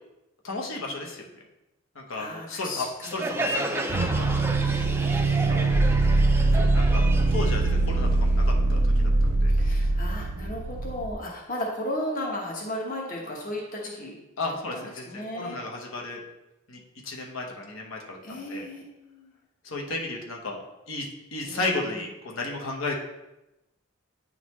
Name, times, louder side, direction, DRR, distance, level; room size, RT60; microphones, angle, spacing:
voice 1, 0.4-1.3 1.9-4.4 5.5-5.8 6.5-9.5 14.4-16.2 16.7-18.6 19.6-20.6 20.9-22.9, left 2 dB, 70° left, 0 dB, 1.0 m, -34 dB
voice 2, 2.1-3.5 4.3-4.6 4.9-5.9 9.5-14.2 14.7-15.6 18.2-19.4 21.4-21.8, left 1 dB, 40° left, -1 dB, 1.0 m, -35 dB
Crowd, 3.0-8.5, right 1 dB, 10° right, 0.3 m, -32 dB
sound 1, 3.9-11.1, right 2 dB, 85° right, 0.7 m, -22 dB
9.4 x 3.9 x 3.1 m, 0.94 s
head